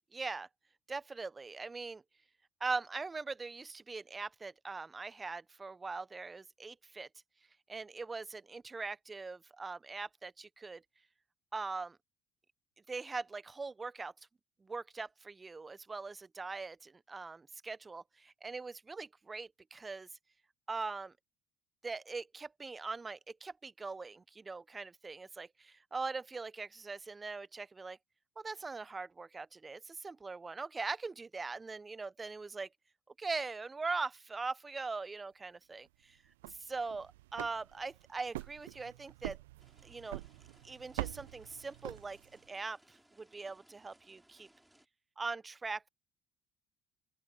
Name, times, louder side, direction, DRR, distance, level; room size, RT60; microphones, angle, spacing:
voice 1, 0.1-0.5 0.9-2.0 2.6-7.1 7.7-10.8 11.5-12.0 12.9-14.1 14.6-20.1 20.7-21.1 21.8-28.0 28.4-32.7 33.2-36.2 36.5-39.4 39.8-40.2 40.6-44.5 45.2-45.9, right 4 dB, 25° right, 1.1 m, -41 dB
sound 1, 36.2-42.5, right 18 dB, 80° right, 0.3 m, -45 dB
sound 2, 39.6-44.9, right 1 dB, 5° right, 6.9 m, -66 dB
open air
hypercardioid pair, 60°, 0 cm